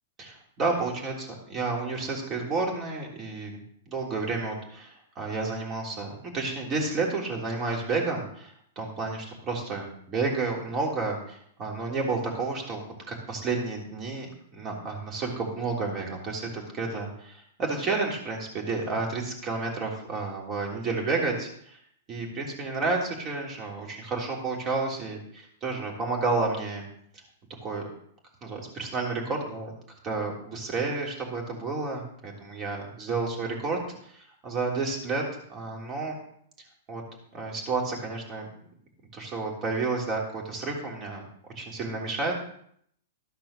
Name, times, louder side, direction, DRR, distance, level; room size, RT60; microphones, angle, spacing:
voice 1, 0.2-12.8 13.1-21.8 22.1-26.8 27.6-27.8 28.4-29.7 30.0-33.8 34.1-35.2 35.5-36.1 36.9-37.0 37.3-38.5 39.1-41.2 41.5-42.4, right 3 dB, 30° right, -1 dB, 3.4 m, -31 dB
13.5 x 6.0 x 6.6 m, 0.66 s
hypercardioid pair, 145°, 0 cm